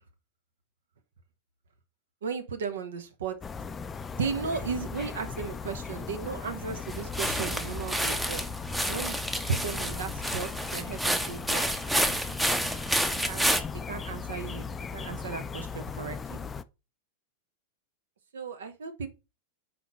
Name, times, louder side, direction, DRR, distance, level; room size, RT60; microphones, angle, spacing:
voice 1, 2.2-3.4 4.2-8.4 8.9-9.2 9.5-11.7 13.3-13.6 13.9-16.4 18.3-19.1, right 5 dB, 65° right, 1.0 m, -35 dB
sound 1, 3.4-16.6, left 5 dB, 20° left, 0.4 m, -38 dB
sound 2, 6.9-13.6, right 1 dB, 5° right, 0.8 m, -29 dB
5.6 x 4.4 x 5.4 m
figure-of-eight pair, 90°, 0 cm